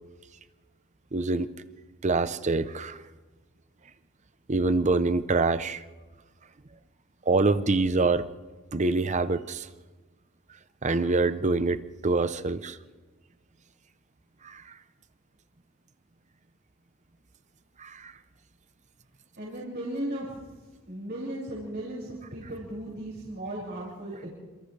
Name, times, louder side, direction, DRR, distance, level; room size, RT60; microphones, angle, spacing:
voice 1, 1.1-1.5 2.0-3.0 4.5-5.8 7.3-8.3 8.7-9.7 10.8-12.8 14.4-14.6 17.8-18.1, right 3 dB, 35° right, 0.8 m, -25 dB
voice 2, 19.4-20.4 20.9-24.3, right 1 dB, 50° right, 6.4 m, -36 dB
28.0 x 27.5 x 3.4 m
head